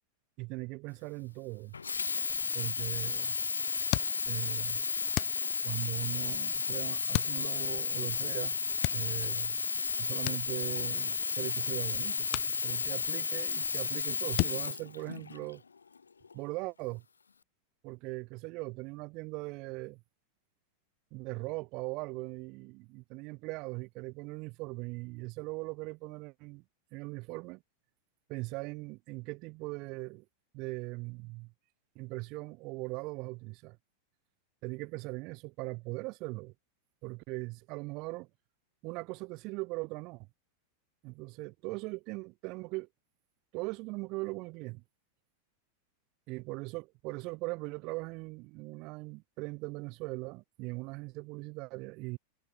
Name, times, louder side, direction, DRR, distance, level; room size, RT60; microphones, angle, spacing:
voice 1, 0.4-1.8 2.5-3.4 4.3-4.8 5.6-8.6 8.9-9.6 10.0-15.6 16.3-17.0 17.8-20.0 21.1-26.6 26.9-27.6 28.3-30.2 30.5-31.5 31.9-33.8 34.6-36.5 37.0-38.3 38.8-40.3 41.0-42.9 43.5-44.8 46.3-52.2, right 25 dB, 40° right, 4.7 m, -40 dB
Sink (filling or washing), 1.7-15.5 16.2-16.3, left 5 dB, 75° left, 2.0 m, -33 dB
sound 1, 3.9-4.6 5.1-5.9 7.1-7.8 8.7-9.4 10.3-11.1 11.4-11.6 12.3-13.2 13.5-14.0 14.4-15.6, left 28 dB, 45° left, 1.2 m, -36 dB
figure-of-eight pair, 90°, 0 cm